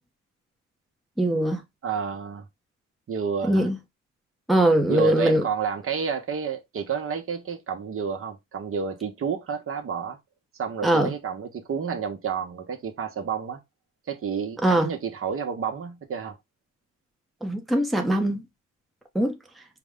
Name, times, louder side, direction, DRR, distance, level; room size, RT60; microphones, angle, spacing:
voice 1, 1.2-1.6 3.5-3.8 4.5-5.4 10.8-11.1 14.6-14.9 17.4-18.4 19.1-19.3, right 1 dB, ahead, 0.7 m, -21 dB
voice 2, 1.8-2.4 3.1-3.7 4.9-10.2 10.6-13.6 14.1-16.3, right 6 dB, 45° right, 1.0 m, -30 dB
4.7 x 2.1 x 3.6 m
cardioid pair, 90°, 30 cm